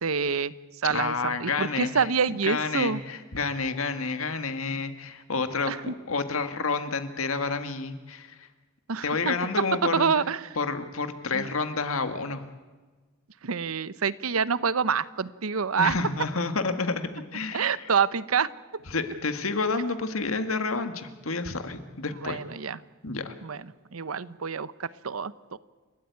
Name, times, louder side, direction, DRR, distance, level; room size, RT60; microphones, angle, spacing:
voice 1, 0.0-0.5 0.8-3.0 5.7-5.9 8.9-9.3 9.9-10.4 11.3-11.5 13.4-15.9 17.5-18.5 22.2-22.8 23.4-25.6, right 6 dB, 85° right, 17 dB, 0.8 m, -27 dB
voice 2, 0.9-2.1 2.4-8.5 9.0-10.1 10.5-12.4 15.8-17.9 18.9-22.4 23.0-23.3, left 4 dB, 80° left, 9 dB, 1.8 m, -29 dB
29.0 x 13.5 x 9.4 m, 1.3 s
head